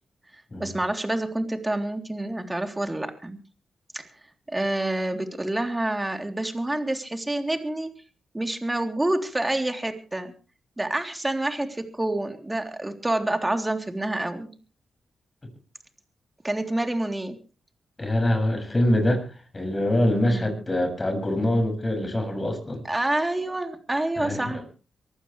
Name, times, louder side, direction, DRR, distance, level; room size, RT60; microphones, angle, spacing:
voice 1, 0.6-3.4 3.9-4.1 4.5-7.9 8.3-10.3 10.8-14.5 16.4-17.3 20.3-20.5 22.8-24.6, right 1 dB, 15° right, 5 dB, 3.5 m, -27 dB
voice 2, 18.0-19.3 19.5-22.8 24.2-24.6, left 1 dB, 25° left, 6 dB, 7.1 m, -24 dB
24.0 x 15.0 x 3.4 m, 0.37 s
cardioid pair, 70°, 0 cm